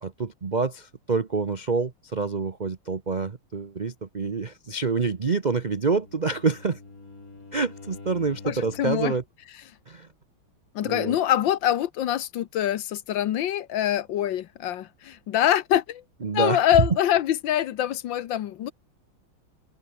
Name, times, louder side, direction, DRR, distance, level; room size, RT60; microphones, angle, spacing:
voice 1, 0.0-6.8 7.5-9.2 9.9-10.1 10.8-11.2 16.2-16.6, right 4 dB, 60° right, 0.4 m, -27 dB
Bowed string instrument, 5.4-9.1, left 3 dB, 40° left, 4.2 m, -46 dB
voice 2, 8.4-9.1 10.7-16.0 16.3-18.7, left 11 dB, 70° left, 1.5 m, -24 dB
omnidirectional pair, 2.3 m